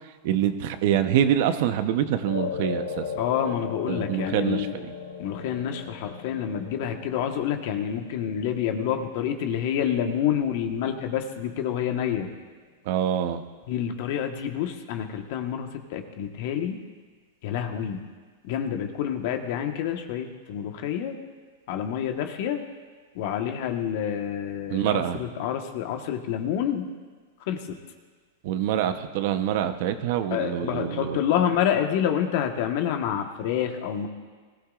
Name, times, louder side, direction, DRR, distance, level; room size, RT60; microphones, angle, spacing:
voice 1, 0.2-3.0 3.9-4.9 12.9-13.4 24.7-25.2 28.4-31.2, right 10 dB, 60° right, 9 dB, 0.9 m, -25 dB
sound 1, 2.3-10.8, left 6 dB, 75° left, 1.7 m, -37 dB
voice 2, 3.2-4.7 5.2-12.3 13.7-16.8 17.4-18.1 18.4-21.1 21.7-22.6 23.1-26.9 27.5-27.7 30.3-34.1, left 9 dB, 60° left, 4 dB, 1.4 m, -28 dB
20.5 x 15.0 x 2.5 m, 1.5 s
hypercardioid pair, 125°, 0 cm